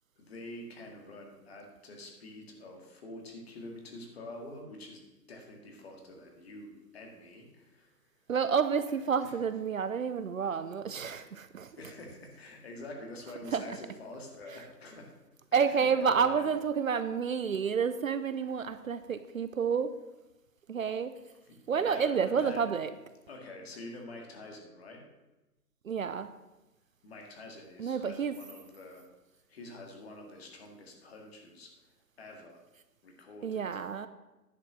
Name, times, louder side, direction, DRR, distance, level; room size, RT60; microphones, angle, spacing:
voice 1, 0.2-5.0 5.3-7.9 8.8-9.4 11.0-11.3 11.7-15.1 15.7-16.5 18.5-18.6 21.4-22.7 23.3-25.1 27.0-29.1 29.5-31.7 32.2-32.6 33.0-33.7, left 2 dB, 40° left, 2 dB, 2.1 m, -47 dB
voice 2, 8.3-11.7 13.5-13.6 15.5-19.9 20.7-21.1 21.7-22.9 25.8-26.3 27.8-28.3 33.4-34.1, right 6 dB, 55° right, 12 dB, 0.6 m, -29 dB
10.5 x 5.7 x 6.2 m, 1.0 s
hypercardioid pair, 155°, 48 cm